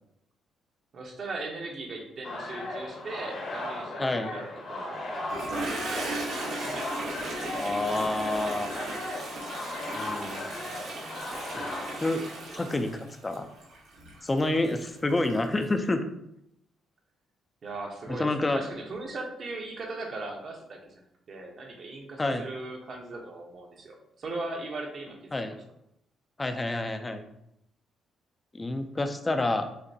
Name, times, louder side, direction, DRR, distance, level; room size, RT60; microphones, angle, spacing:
voice 1, 0.9-5.1 5.5-6.8 17.6-20.8 21.3-25.6, right 2 dB, 50° right, 1 dB, 0.9 m, -39 dB
sound 1, 2.2-12.7, left 2 dB, 60° left, 1.2 m, -37 dB
voice 2, 4.0-4.3 7.5-8.7 9.9-10.5 11.5-11.6 12.0-12.2 12.5-13.5 14.2-16.0 18.1-18.6 22.2-22.4 25.3-25.6 26.4-27.2 28.5-29.7, left 2 dB, 20° left, 7 dB, 0.5 m, -28 dB
Toilet flush, 5.1-15.7, right 2 dB, 85° right, 1.1 m, -37 dB
6.4 x 2.2 x 2.7 m, 0.79 s
cardioid pair, 90°, 0 cm